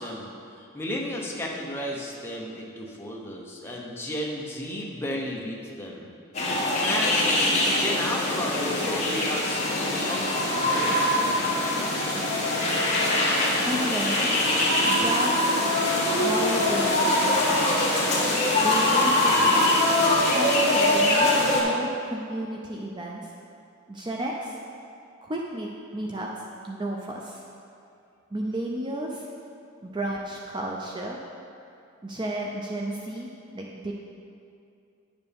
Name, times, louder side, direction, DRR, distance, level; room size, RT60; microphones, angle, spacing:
voice 1, 0.0-6.1 6.8-11.9, left 1 dB, 10° left, -3 dB, 0.9 m, -34 dB
sound 1, 6.3-21.6, left 1 dB, 30° left, 1.5 m, -23 dB
voice 2, 13.6-14.3 14.8-15.5 16.0-17.6 18.5-19.6 20.3-23.3 23.9-24.6 25.2-26.3 26.6-27.4 28.3-29.3 29.8-31.2 32.0-33.9, right 1 dB, 20° right, -1 dB, 0.5 m, -32 dB
9.9 x 6.8 x 3.5 m, 2.5 s
head